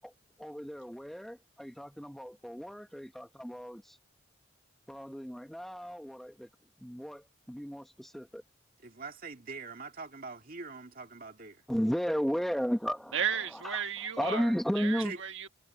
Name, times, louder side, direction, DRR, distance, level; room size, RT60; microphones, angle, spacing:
voice 1, 0.4-4.0 4.9-6.5 6.8-8.4 11.7-13.2 13.5-13.8 14.2-15.1, equal, ahead, 0.8 m, -34 dB
voice 2, 8.8-11.6 15.0-15.2, right 4 dB, 45° right, 2.1 m, -44 dB
voice 3, 13.1-15.5, right 7 dB, 70° right, 1.3 m, -34 dB
head